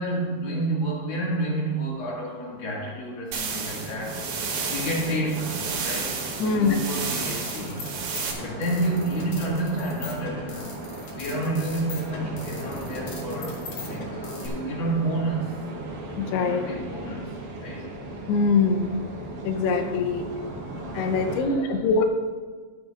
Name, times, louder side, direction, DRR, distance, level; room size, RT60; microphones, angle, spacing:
voice 1, 0.0-4.2 4.7-6.1 6.4-7.8 8.4-10.8 11.1-15.5 16.4-17.3 17.6-17.9 21.1-21.8, right 1 dB, 35° left, -5 dB, 2.4 m, -30 dB
sound 1, 3.3-8.3, right 5 dB, 85° right, 3.7 m, -32 dB
sound 2, 3.5-21.4, right 2 dB, 60° right, 2.5 m, -37 dB
voice 2, 6.4-6.8 16.2-16.6 18.3-19.1 19.4-20.3 20.9-22.0, left 4 dB, 85° left, 6 dB, 2.8 m, -23 dB
sound 3, 7.0-14.5, left 4 dB, 60° left, 3.8 m, -40 dB
12.5 x 12.5 x 2.5 m, 1.5 s
omnidirectional pair, 4.6 m